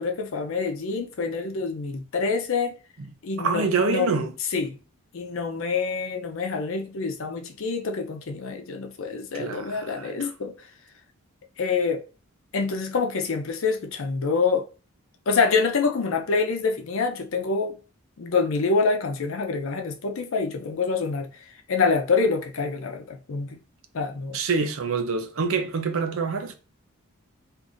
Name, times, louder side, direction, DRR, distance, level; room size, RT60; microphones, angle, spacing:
voice 1, 0.0-2.7 3.2-4.1 4.5-4.8 5.1-10.5 11.6-12.0 12.5-14.7 15.3-17.8 18.2-21.3 21.7-23.6 23.9-24.4, left 4 dB, 65° left, 0.5 m, -26 dB
voice 2, 3.4-4.3 9.3-10.3 24.3-26.6, right 4 dB, 70° right, 0.5 m, -26 dB
2.6 x 2.5 x 3.7 m
head